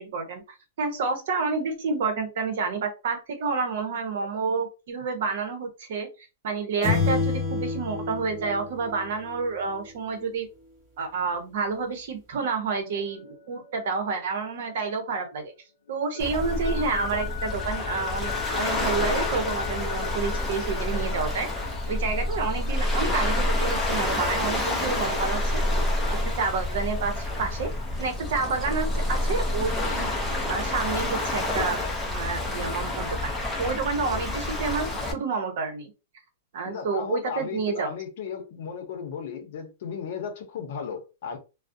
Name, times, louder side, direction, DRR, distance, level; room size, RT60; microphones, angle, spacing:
voice 1, 0.0-6.1 6.4-10.5 11.0-15.5 15.9-21.5 21.9-25.5 26.0-27.7 28.0-30.1 30.5-31.8 32.1-33.3 33.6-34.9 35.1-35.9 36.5-37.9, right 4 dB, 60° right, 0.8 m, -29 dB
sound 1, 6.8-9.5, left 4 dB, 25° right, 1.0 m, -28 dB
sound 2, 12.8-15.5 15.9-25.3, left 12 dB, 85° left, 0.6 m, -40 dB
Waves surf, 16.2-35.1, left 1 dB, ahead, 0.5 m, -28 dB
voice 2, 36.6-41.4, left 7 dB, 55° left, 0.7 m, -35 dB
2.3 x 2.0 x 2.6 m
supercardioid pair, 165°, 0 cm